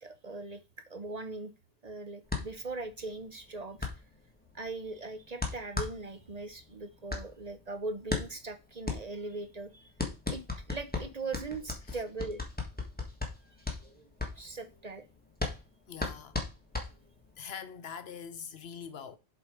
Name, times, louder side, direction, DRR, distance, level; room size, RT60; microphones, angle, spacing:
voice 1, 0.0-0.6 0.9-1.5 1.8-3.9 4.5-9.9 10.3-10.4 10.7-12.4 13.8-15.0, right 3 dB, 40° right, 0.8 m, -40 dB
sound 1, 2.3-17.4, left 3 dB, 10° left, 1.6 m, -37 dB
voice 2, 15.9-16.4 17.4-19.2, left 7 dB, 70° left, 1.1 m, -43 dB
7.4 x 4.5 x 4.8 m
omnidirectional pair, 1.1 m